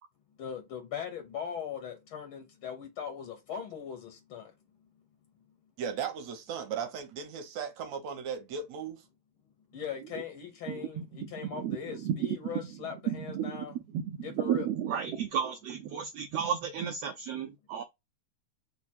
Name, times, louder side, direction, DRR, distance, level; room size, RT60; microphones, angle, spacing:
voice 1, 0.4-4.5 9.7-13.8 14.2-14.7, left 8 dB, 75° left, 1.2 m, -40 dB
voice 2, 5.8-9.1, right 7 dB, 70° right, 2.0 m, -36 dB
voice 3, 10.7-12.4 13.1-17.8, right 9 dB, 90° right, 1.4 m, -33 dB
4.8 x 2.2 x 4.1 m
omnidirectional pair, 3.5 m